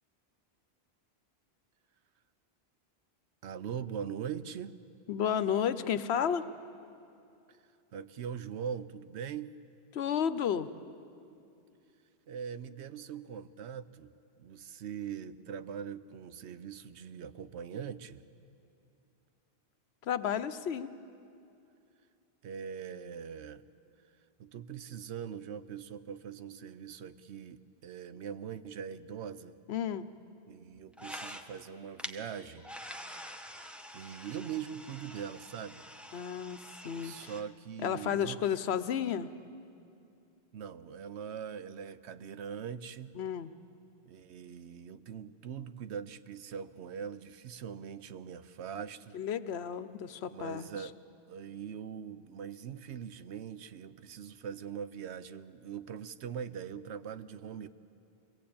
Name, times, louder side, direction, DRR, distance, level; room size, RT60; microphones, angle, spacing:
voice 1, 3.4-4.8 7.5-7.6 7.9-9.6 12.3-18.2 22.4-23.6 24.4-29.6 30.5-32.7 33.9-35.9 36.9-38.4 40.5-43.2 44.1-49.2 50.3-50.9 51.3-57.7, right 7 dB, 90° right, 13 dB, 1.0 m, -42 dB
voice 2, 5.1-6.4 9.9-10.7 20.0-20.9 29.7-30.1 36.1-36.6 36.8-37.3 37.8-39.3 43.2-43.5 49.1-50.7, left 8 dB, 75° left, 13 dB, 1.0 m, -32 dB
sound 1, 30.9-31.7 32.0-32.1 32.6-37.4, equal, ahead, 0.9 m, -46 dB
22.5 x 17.0 x 8.6 m, 2.6 s
omnidirectional pair, 1.1 m